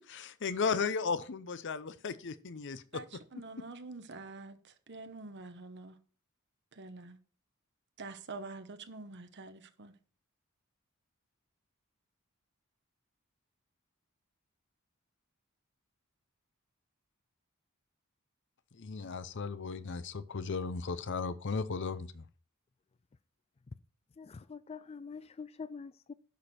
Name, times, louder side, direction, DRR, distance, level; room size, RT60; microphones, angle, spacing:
voice 1, 0.1-3.2 18.8-22.2, left 5 dB, 55° left, 0.7 m, -35 dB
voice 2, 3.3-6.0 6.7-7.2 8.0-9.9, right 3 dB, 55° right, 1.1 m, -46 dB
voice 3, 24.2-26.1, left 5 dB, 30° left, 0.3 m, -45 dB
10.5 x 6.5 x 4.3 m
head